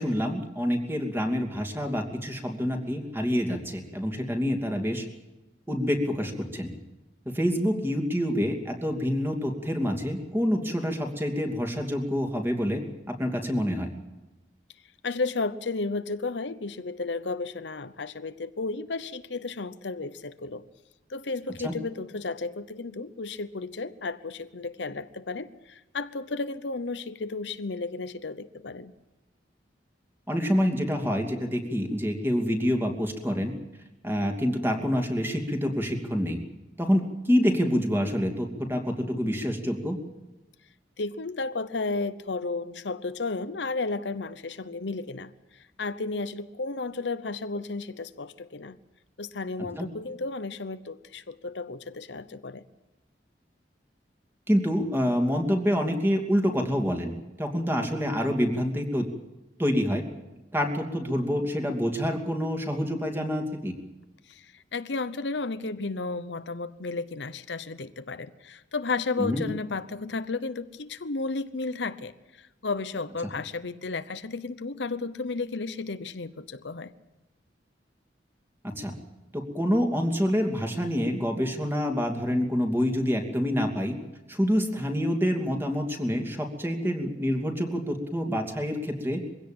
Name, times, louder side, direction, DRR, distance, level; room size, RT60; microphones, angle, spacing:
voice 1, 0.0-5.0 5.7-6.7 7.3-12.8 13.1-13.9 21.6-21.7 30.3-33.5 34.0-36.4 36.8-40.0 49.8-49.9 54.5-57.1 57.4-59.1 59.6-60.1 60.5-63.7 69.2-69.4 78.6-78.9 79.3-84.0 84.3-89.2, equal, 15° right, 4 dB, 2.7 m, -27 dB
voice 2, 15.0-20.6 21.1-28.9 41.0-45.3 45.8-48.8 49.2-52.6 64.3-72.1 72.4-76.9, left 3 dB, 75° left, 12 dB, 0.9 m, -33 dB
23.0 x 16.5 x 8.7 m, 1.0 s
head